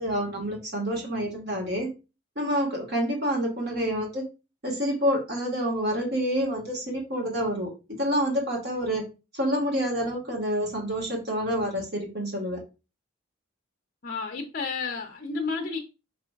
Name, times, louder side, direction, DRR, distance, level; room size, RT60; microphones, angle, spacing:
voice 1, 0.0-1.9 2.3-4.3 4.6-9.0 9.3-12.6, equal, 50° right, 1.5 m, -28 dB
voice 2, 14.0-15.8, left 4 dB, 45° left, 0.6 m, -31 dB
5.1 x 4.2 x 2.3 m
head